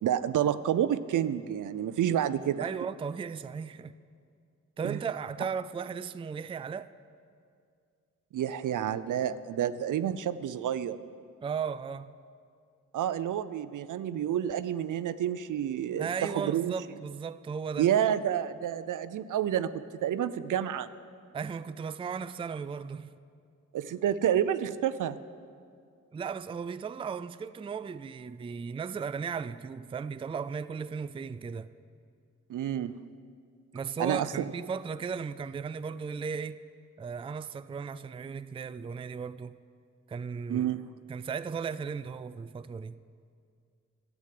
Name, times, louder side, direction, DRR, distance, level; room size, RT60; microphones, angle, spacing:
voice 1, 0.0-2.7 4.8-5.0 8.3-11.0 12.9-16.7 17.8-20.9 23.7-25.2 32.5-32.9 34.0-34.5 40.5-40.8, right 10 dB, 75° right, 0.5 m, -29 dB
voice 2, 2.6-3.9 4.8-6.9 11.4-12.1 16.0-17.9 21.3-23.1 26.1-31.7 33.7-36.6 37.0-39.6 40.1-40.7 41.1-43.0, right 6 dB, 20° right, 0.3 m, -36 dB
11.5 x 8.1 x 7.6 m
cardioid pair, 60°, 32 cm